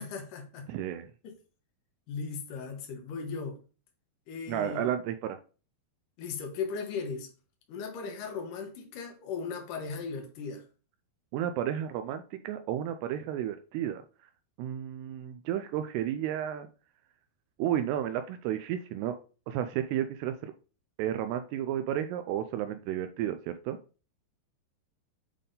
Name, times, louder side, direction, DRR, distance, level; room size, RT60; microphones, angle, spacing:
voice 1, 0.0-0.7 1.2-1.3 2.1-3.6 4.3-4.9 6.2-7.3 7.7-10.6, left 5 dB, 60° left, 2.7 m, -37 dB
voice 2, 0.7-1.1 4.5-5.4 11.3-14.0 14.6-16.7 17.6-19.2 19.5-20.5 21.0-23.8, right 10 dB, 80° right, 2.5 m, -32 dB
8.3 x 3.6 x 3.8 m
omnidirectional pair, 5.0 m